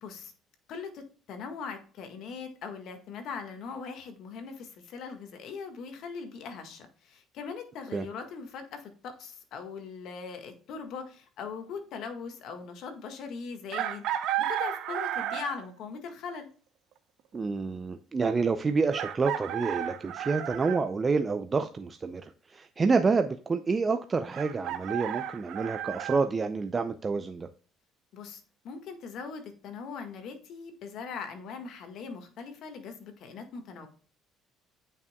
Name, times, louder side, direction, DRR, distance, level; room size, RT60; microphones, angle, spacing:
voice 1, 0.0-0.3 0.7-1.0 1.3-14.0 14.5-16.5 28.1-33.9, left 5 dB, 65° left, 6 dB, 1.7 m, -40 dB
Chicken rooster, 13.7-15.7 17.3-17.4 18.9-20.8 24.3-26.2, right 11 dB, 70° right, 0.8 m, -33 dB
voice 2, 17.3-27.5, right 4 dB, 25° right, 8 dB, 0.5 m, -28 dB
9.3 x 5.6 x 2.3 m, 0.40 s
cardioid pair, 105°, 0 cm